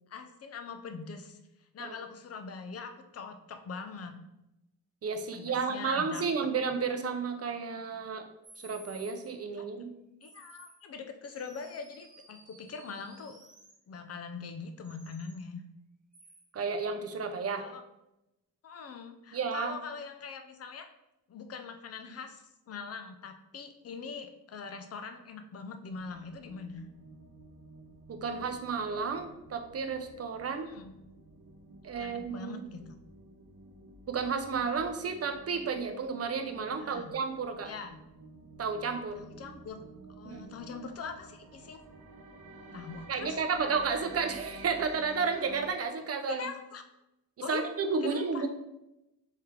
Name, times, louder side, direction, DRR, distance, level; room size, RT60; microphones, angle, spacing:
voice 1, 0.1-1.4 1.7-4.2 5.3-6.2 9.6-9.7 10.2-13.4 13.9-15.6 17.6-17.8 18.6-20.9 21.3-26.8 30.5-30.9 32.0-33.0 36.8-37.1 37.6-38.0 39.2-39.8 40.2-41.8 42.7-43.4 46.3-46.8 47.4-47.7 48.0-48.5, left 5 dB, 45° left, 6 dB, 0.5 m, -42 dB
voice 2, 5.0-8.3 8.6-9.9 16.5-17.7 19.3-19.7 28.1-30.7 31.8-32.6 34.1-37.7 38.6-39.2 40.2-40.5 43.1-46.5 47.5-48.5, right 5 dB, 40° right, 7 dB, 0.5 m, -32 dB
sound 1, 8.4-9.3 10.2-10.8 11.2-13.8 14.8-15.4 16.1-16.4, right 2 dB, 20° right, 0.9 m, -55 dB
sound 2, 25.9-45.7, right 2 dB, 65° right, 0.9 m, -51 dB
4.5 x 3.3 x 3.6 m, 0.91 s
wide cardioid pair, 150°, 36 cm